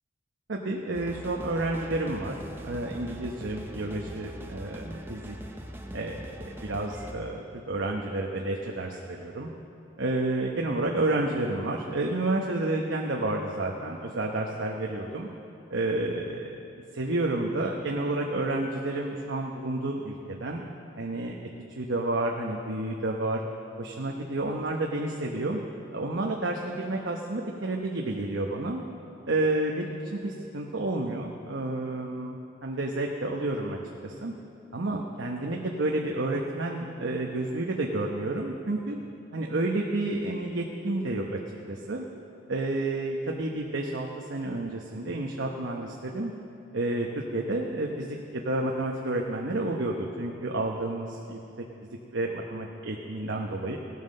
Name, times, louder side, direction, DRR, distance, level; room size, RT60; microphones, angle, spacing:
voice 1, 0.5-5.4 5.9-6.3 6.6-9.5 10.0-15.3 15.7-16.6 16.9-20.6 21.0-21.3 21.8-23.4 23.8-25.6 25.9-28.8 29.3-34.3 34.7-39.0 39.3-41.4 41.7-42.0 42.5-46.3 46.7-51.4 51.8-53.8, right 2 dB, 75° right, 0 dB, 1.0 m, -30 dB
sound 1, 0.9-7.1, equal, 10° right, 0.8 m, -41 dB
17.0 x 9.4 x 6.5 m, 2.9 s
head